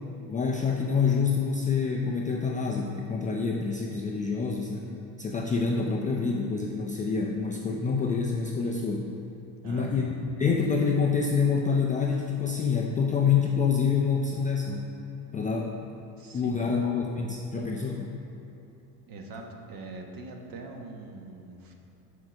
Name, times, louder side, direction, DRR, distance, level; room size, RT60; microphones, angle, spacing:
voice 1, 0.3-4.9 5.2-9.1 9.6-10.1 10.4-14.9 15.3-15.7 16.3-18.2, left 5 dB, 20° left, -1 dB, 0.3 m, -27 dB
voice 2, 9.6-9.9 16.2-16.6 19.1-21.7, right 3 dB, 45° right, 2 dB, 1.1 m, -42 dB
6.4 x 4.7 x 6.1 m, 3.0 s
supercardioid pair, 105°, 49 cm